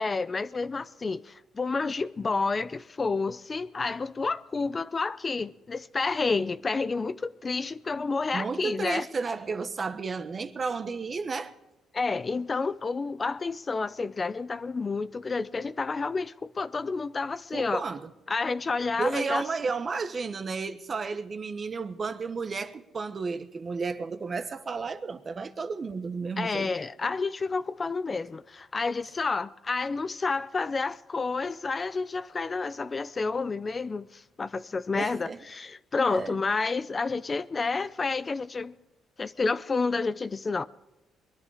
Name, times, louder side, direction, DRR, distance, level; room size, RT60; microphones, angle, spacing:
voice 1, 0.0-9.1 11.9-17.8 18.3-19.4 26.4-38.7 39.2-40.6, left 4 dB, 30° left, 0.5 m, -30 dB
voice 2, 8.3-11.5 17.5-18.1 19.0-26.7 35.0-35.4 36.1-36.4, right 4 dB, 40° right, 1.1 m, -32 dB
22.0 x 11.0 x 4.9 m
cardioid pair, 90°, 0 cm